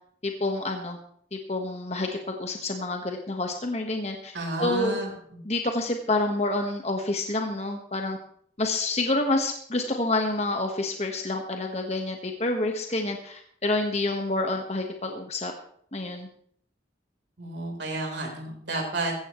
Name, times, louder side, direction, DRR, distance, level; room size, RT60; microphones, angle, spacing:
voice 1, 0.2-1.0 1.3-4.3 4.6-5.0 5.4-8.2 8.6-15.5 15.9-16.3, left 2 dB, 40° left, 3 dB, 1.4 m, -28 dB
voice 2, 4.3-5.4 17.4-19.1, right 2 dB, 85° right, 1 dB, 3.9 m, -31 dB
15.5 x 15.0 x 3.1 m, 0.63 s
head